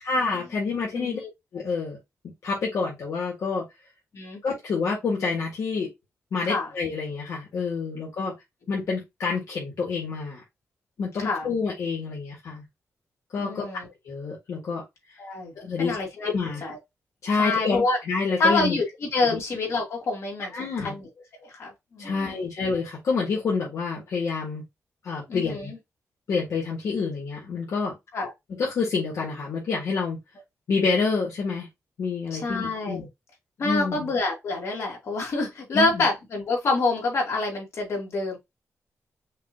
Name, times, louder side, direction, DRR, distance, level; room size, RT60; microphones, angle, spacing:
voice 1, 0.0-1.2 1.5-2.0 2.4-3.7 4.4-5.9 6.3-8.3 8.7-10.4 11.0-12.6 13.3-13.7 14.1-14.8 15.6-15.9 16.2-16.6 17.2-18.8 19.2-19.4 20.5-21.0 22.0-24.6 25.0-25.7 26.3-27.9 28.5-30.2 30.7-31.7 32.0-33.1 33.6-34.1 35.7-36.0, left 4 dB, 75° left, 1.9 m, -28 dB
voice 2, 0.9-1.3 4.1-4.4 6.4-6.7 11.2-11.5 13.4-13.9 15.2-16.3 16.6-16.8 17.4-18.0 18.4-20.5 20.8-21.1 21.4-22.4 25.3-25.8 28.1-28.3 32.3-33.0 33.6-38.4, left 3 dB, 60° left, 2.4 m, -27 dB
5.7 x 2.6 x 3.1 m
wide cardioid pair, 165°, 5 cm